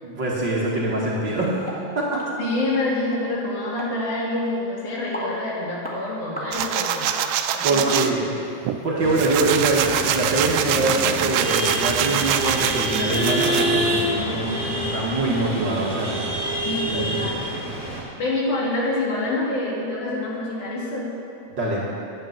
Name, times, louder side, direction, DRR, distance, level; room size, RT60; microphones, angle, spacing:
voice 1, 0.0-1.6 2.0-2.2 7.6-8.4 8.8-16.3 16.9-17.3 21.6-21.8, right 2 dB, 45° right, -5 dB, 2.0 m, -24 dB
sound 1, 1.7-1.8 2.2-2.3 2.7-2.9 3.1-3.2 3.8-3.9 4.5-4.6 5.1-5.3 5.8-6.0 6.4-6.5 7.1-7.2 7.9-8.3 8.8-8.9 9.4-9.5 9.9-10.0, equal, 5° left, 0.7 m, -35 dB
voice 2, 2.4-8.1 16.6-17.4 18.2-21.1, left 2 dB, 80° left, -4 dB, 3.8 m, -27 dB
sound 2, 6.5-8.1 8.6-13.7, right 10 dB, 75° right, 1.6 m, -25 dB
sound 3, 9.0-18.0, right 1 dB, 25° right, 3.3 m, -27 dB
9.8 x 9.1 x 8.2 m, 2.6 s
omnidirectional pair, 3.4 m